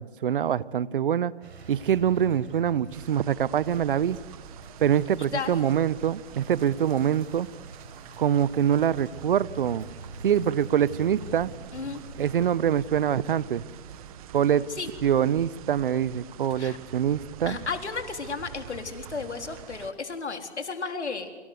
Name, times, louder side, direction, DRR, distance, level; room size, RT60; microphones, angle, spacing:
voice 1, 0.0-1.3 1.7-4.2 4.8-7.5 8.2-9.9 10.2-11.5 12.2-13.6 14.3-14.7 15.0-17.6, right 9 dB, 50° right, 20 dB, 1.0 m, -24 dB
sound 1, 1.4-15.1, right 3 dB, 70° right, 5.2 m, -46 dB
sound 2, 2.9-19.9, right 10 dB, 35° right, 1.5 m, -46 dB
voice 2, 5.3-5.8 11.7-12.0 14.7-14.9 16.5-16.8 17.5-21.3, left 4 dB, 80° left, 6 dB, 4.1 m, -33 dB
28.5 x 25.5 x 8.1 m, 1.2 s
hypercardioid pair, 140°, 33 cm